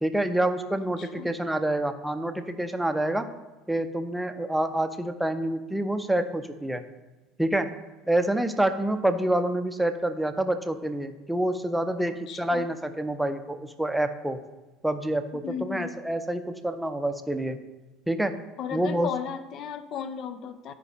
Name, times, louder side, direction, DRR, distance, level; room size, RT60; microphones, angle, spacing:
voice 1, 0.0-3.3 3.7-6.8 7.4-7.7 8.1-14.4 14.8-17.6 18.1-18.3 18.7-19.1, right 1 dB, 5° right, 8 dB, 0.7 m, -27 dB
voice 2, 1.0-1.3 12.3-12.7 15.3-15.9 18.6-20.7, left 7 dB, 45° left, 12 dB, 0.5 m, -35 dB
13.0 x 4.9 x 3.4 m, 1.2 s
figure-of-eight pair, 65°, 0 cm